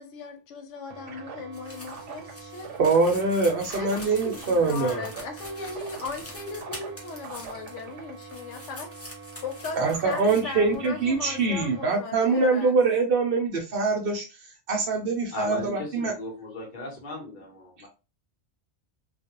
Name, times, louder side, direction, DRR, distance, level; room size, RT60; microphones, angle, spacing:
voice 1, 0.0-2.7 3.7-8.9 9.4-12.7, left 4 dB, 85° left, 1.0 m, -38 dB
sound 1, 0.9-11.8, right 5 dB, 90° right, 1.0 m, -43 dB
sound 2, 1.5-7.9 8.2-10.4 10.8-10.9, left 1 dB, 20° left, 0.4 m, -45 dB
voice 2, 2.8-5.1 9.8-14.3 14.7-16.1, right 3 dB, 60° right, 0.7 m, -24 dB
voice 3, 15.3-17.9, left 2 dB, 50° left, 0.9 m, -36 dB
2.3 x 2.1 x 2.9 m
omnidirectional pair, 1.2 m